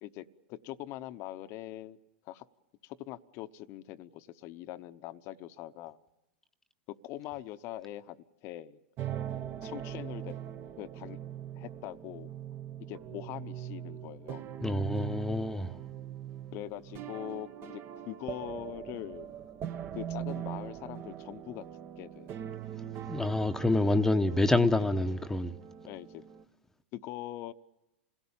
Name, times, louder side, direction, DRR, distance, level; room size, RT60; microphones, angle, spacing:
voice 1, 0.0-2.0 2.3-2.5 2.8-6.0 6.9-8.8 9.6-10.3 10.8-11.2 11.5-12.3 12.9-14.4 16.5-19.3 19.9-21.7 22.0-22.3 24.3-24.4 24.7-24.9 25.9-26.3 26.9-27.5, left 14 dB, 45° left, 0.9 m, -42 dB
sound 1, 9.0-26.4, right 10 dB, 40° right, 1.1 m, -41 dB
voice 2, 14.6-15.7 23.1-25.5, left 2 dB, 5° left, 1.0 m, -27 dB
27.0 x 17.5 x 8.8 m
hypercardioid pair, 105°, 6 cm